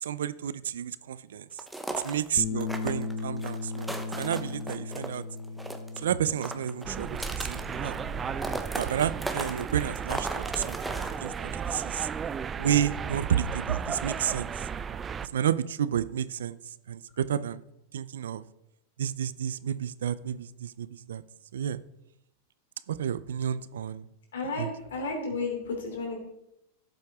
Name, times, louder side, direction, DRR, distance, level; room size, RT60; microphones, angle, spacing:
voice 1, 0.0-1.5 2.0-5.2 6.0-8.0 8.7-12.1 12.6-14.7 15.2-17.6 17.9-18.4 19.0-21.2 21.5-21.8 22.9-24.1 24.6-24.7, right 9 dB, 85° right, 17 dB, 0.5 m, -31 dB
sound 1, 1.6-2.3 2.6-5.1 5.4-6.0 6.3-8.1 8.4-11.3, right 1 dB, 5° right, 0.9 m, -36 dB
Bass guitar, 2.4-8.6, left 4 dB, 60° left, 0.8 m, -37 dB
sound 2, 6.8-15.3, right 6 dB, 20° right, 0.3 m, -35 dB
voice 2, 24.3-26.2, left 3 dB, 90° left, 2 dB, 3.1 m, -32 dB
12.0 x 7.8 x 3.6 m, 0.85 s
hypercardioid pair, 125°, 0 cm